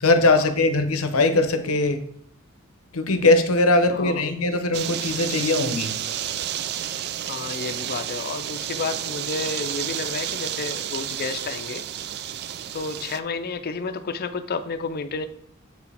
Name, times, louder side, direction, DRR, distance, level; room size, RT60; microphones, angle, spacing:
voice 1, 0.0-2.0 2.9-5.9, left 2 dB, 90° left, 0.8 m, -20 dB
voice 2, 3.9-4.2 7.2-11.8 12.7-15.3, left 4 dB, 45° left, 0.5 m, -31 dB
sound 1, 4.7-13.2, right 10 dB, 50° right, 0.3 m, -31 dB
7.7 x 4.7 x 3.4 m
head